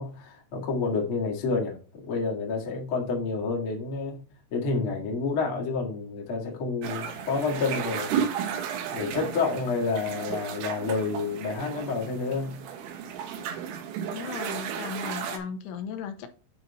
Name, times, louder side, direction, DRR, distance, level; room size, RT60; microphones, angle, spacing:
voice 1, 0.0-8.2 8.9-12.6, left 4 dB, 55° left, 1.5 m, -29 dB
sound 1, 6.8-15.4, right 8 dB, 75° right, 3.3 m, -34 dB
voice 2, 14.1-16.3, left 6 dB, 80° left, 3.2 m, -36 dB
9.3 x 4.1 x 4.2 m
omnidirectional pair, 5.5 m